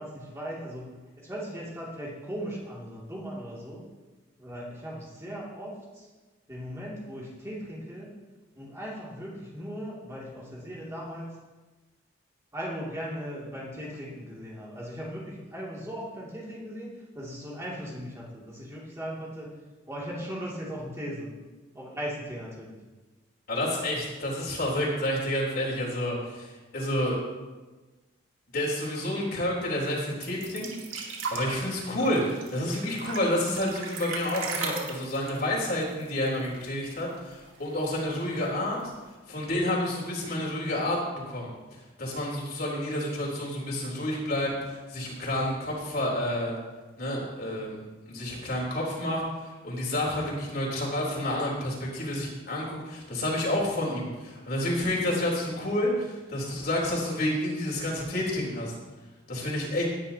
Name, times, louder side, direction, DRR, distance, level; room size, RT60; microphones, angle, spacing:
voice 1, 0.0-3.8 4.4-6.1 6.5-8.2 8.5-11.4 12.5-19.5 19.9-21.3 21.7-22.8, equal, 15° right, -5 dB, 2.6 m, -38 dB
voice 2, 23.5-27.2 28.5-30.7 30.9-38.8 39.3-41.5 42.0-46.6 47.0-58.7 59.3-59.9, left 1 dB, 50° left, -4 dB, 3.7 m, -29 dB
sound 1, 30.2-36.6 36.9-37.0 37.3-38.0 38.8-38.9, right 4 dB, 80° right, 2.1 m, -36 dB
18.0 x 11.0 x 2.9 m, 1.2 s
head